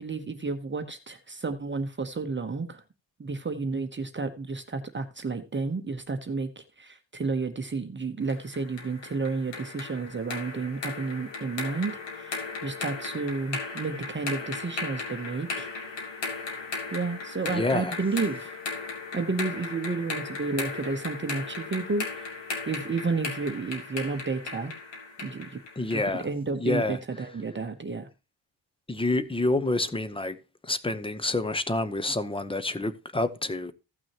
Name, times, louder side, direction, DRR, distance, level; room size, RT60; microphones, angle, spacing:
voice 1, 0.0-2.8 3.2-15.7 16.9-18.6 19.1-22.3 22.7-24.7 25.2-25.6 25.9-28.1, right 4 dB, 25° right, 1.0 m, -31 dB
sound 1, 8.3-26.1, left 4 dB, 75° left, 2.9 m, -37 dB
voice 2, 17.5-18.0 25.8-26.3 26.6-27.3 28.9-30.4 30.6-33.7, left 2 dB, 10° left, 0.8 m, -28 dB
15.5 x 6.1 x 2.9 m
cardioid pair, 125°, 44 cm